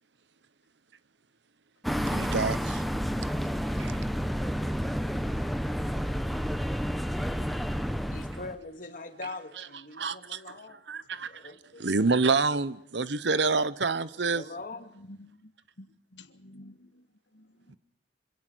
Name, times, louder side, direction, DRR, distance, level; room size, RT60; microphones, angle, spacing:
sound 1, 1.8-8.6, equal, ahead, 0.9 m, -30 dB
voice 1, 2.0-2.8 3.8-3.9 10.0-11.3 11.8-14.4, right 4 dB, 75° right, 1.0 m, -27 dB
voice 2, 8.1-10.8 11.3-11.8 14.3-15.0, left 3 dB, 45° left, 2.0 m, -42 dB
voice 3, 15.1-15.4 15.8-16.9 17.3-17.8, left 1 dB, 75° left, 1.7 m, -50 dB
25.5 x 17.0 x 6.3 m
head